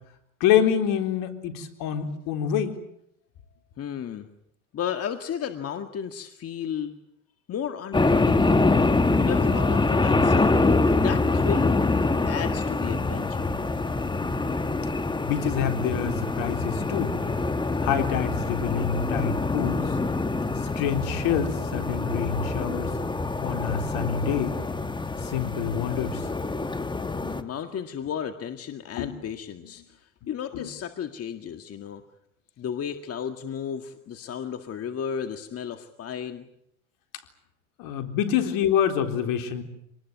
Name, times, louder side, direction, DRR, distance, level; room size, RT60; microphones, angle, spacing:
voice 1, 0.4-2.7 15.2-17.2 17.8-20.0 20.6-22.9 23.4-24.6 25.2-26.3 29.0-29.2 30.5-30.7 37.8-39.6, left 8 dB, 65° left, 7 dB, 3.9 m, -26 dB
voice 2, 3.8-4.3 4.7-7.0 7.5-8.8 9.2-10.7 11.0-11.8 12.3-13.6 27.2-32.0 32.6-36.5, left 8 dB, 40° left, 8 dB, 2.0 m, -34 dB
sound 1, 7.9-27.4, left 3 dB, 10° left, 1.7 m, -25 dB
26.5 x 20.0 x 9.4 m, 0.75 s
hypercardioid pair, 85°, 36 cm